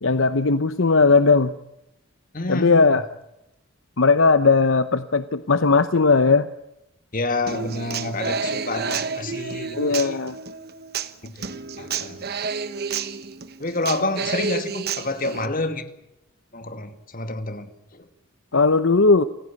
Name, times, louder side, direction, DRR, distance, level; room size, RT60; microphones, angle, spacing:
voice 1, 0.0-1.5 2.5-3.0 4.0-6.5 9.7-10.4 18.5-19.2, left 4 dB, 65° left, 12 dB, 0.9 m, -18 dB
voice 2, 2.3-2.9 7.1-10.2 11.2-12.4 13.6-15.8 16.5-18.1, left 2 dB, 40° left, 9 dB, 2.1 m, -29 dB
Human voice / Acoustic guitar, 7.5-15.5, right 5 dB, 45° right, 1.2 m, -30 dB
28.5 x 16.0 x 8.6 m, 0.87 s
head